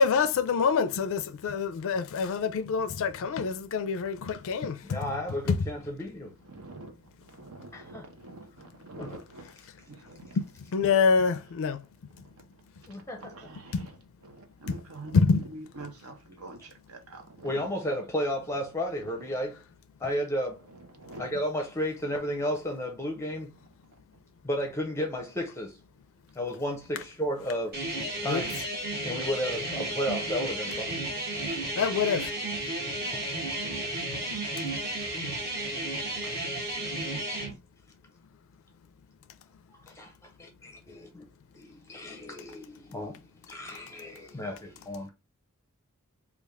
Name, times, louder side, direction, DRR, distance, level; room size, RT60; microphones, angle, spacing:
voice 1, 0.0-4.8 5.5-5.6 10.4-10.5 10.7-11.8 13.7-13.9 15.1-15.4 28.3-28.4 31.7-32.3, left 5 dB, 65° left, 0.4 m, -25 dB
voice 2, 4.8-6.3 7.7-8.1 9.0-9.2 12.9-13.3 17.4-19.6 20.0-20.6 21.2-23.5 24.4-25.8 26.3-27.7 28.2-28.6 29.0-31.0 33.1-33.2 35.0-35.1 39.7-41.2 41.5-43.2 43.5-45.1, equal, 15° left, 0.5 m, -33 dB
voice 3, 6.4-7.0 7.2-9.5 9.9-10.4 10.8-10.9 12.2-12.4 13.2-13.9 14.2-17.7 19.0-19.3 20.9-21.3, right 2 dB, 75° right, 0.8 m, -46 dB
sound 1, 27.7-37.5, right 1 dB, 45° right, 1.3 m, -33 dB
3.3 x 2.4 x 3.5 m
head